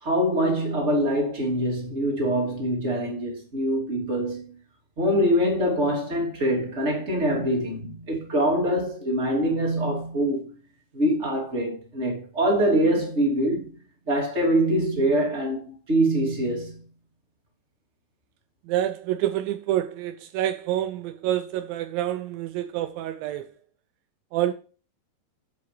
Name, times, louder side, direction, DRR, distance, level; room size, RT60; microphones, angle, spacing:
voice 1, 0.0-4.5 5.0-10.5 10.9-13.7 14.1-16.8, equal, 20° right, 2.7 m, -24 dB
voice 2, 18.7-23.5 24.3-24.5, right 12 dB, 90° right, 2.0 m, -27 dB
10.5 x 7.8 x 3.4 m
omnidirectional pair, 4.7 m